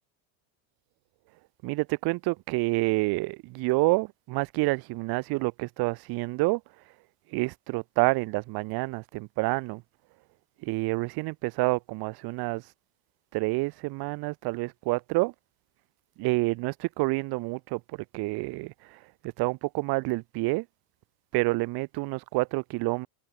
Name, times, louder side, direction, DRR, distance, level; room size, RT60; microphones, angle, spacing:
voice 1, 1.6-6.6 7.3-9.8 10.7-12.6 13.3-15.3 16.2-17.8 18.1-18.7 19.4-20.6 21.3-23.1, right 24 dB, 55° right, 1.1 m, -28 dB
cardioid pair, 160°, 45 cm